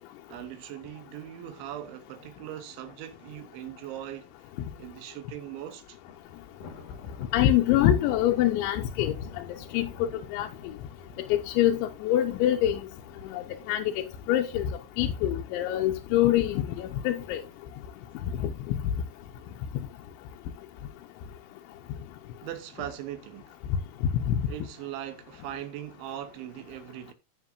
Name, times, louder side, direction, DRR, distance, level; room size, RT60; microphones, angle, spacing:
voice 1, 0.3-6.0 22.4-23.6 24.5-27.1, right 12 dB, 85° right, 3.3 m, -40 dB
Thunder, 6.0-19.3 19.7-20.0 20.4-20.5 21.3-21.9, left 4 dB, 55° left, 1.9 m, -50 dB
voice 2, 7.3-9.1 9.7-10.5 11.3-12.9 13.3-14.7 15.0-17.4 18.7-18.8 24.3-24.4, left 12 dB, 85° left, 3.1 m, -25 dB
15.0 x 6.8 x 2.6 m
omnidirectional pair, 5.3 m